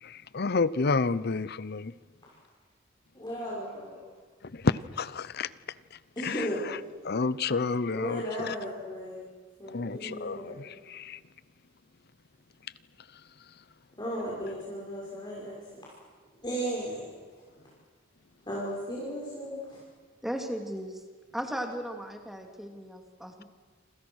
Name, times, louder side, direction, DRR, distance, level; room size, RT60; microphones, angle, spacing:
voice 1, 0.0-1.9 4.4-5.5 5.9-6.8 7.0-8.6 9.7-11.2, left 4 dB, 55° left, 0.8 m, -30 dB
voice 2, 3.1-4.0 6.2-6.6 7.9-9.2 9.6-10.6 14.0-15.8 16.4-17.1 18.5-19.8, equal, 20° left, 5.9 m, -35 dB
voice 3, 20.2-21.0 21.3-23.4, equal, ahead, 2.9 m, -36 dB
28.5 x 26.5 x 6.4 m
head